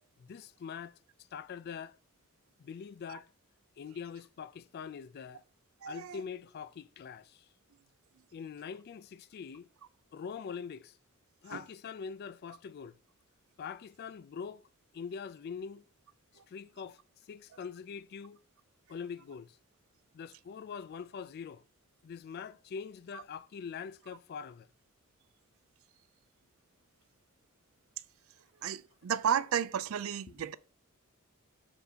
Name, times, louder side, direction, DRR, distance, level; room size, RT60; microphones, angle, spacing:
voice 1, 0.2-1.0 1.3-1.9 2.6-3.3 3.8-5.4 5.9-7.5 8.3-9.7 10.1-11.0 11.4-13.0 13.6-14.6 14.9-15.8 16.5-17.0 17.3-18.4 18.9-19.6 20.1-21.6 22.0-24.7, left 6 dB, 45° left, 0.3 m, -43 dB
voice 2, 5.8-6.2 11.5-11.6 28.6-30.5, right 8 dB, 70° right, 0.4 m, -33 dB
6.9 x 2.7 x 5.0 m
head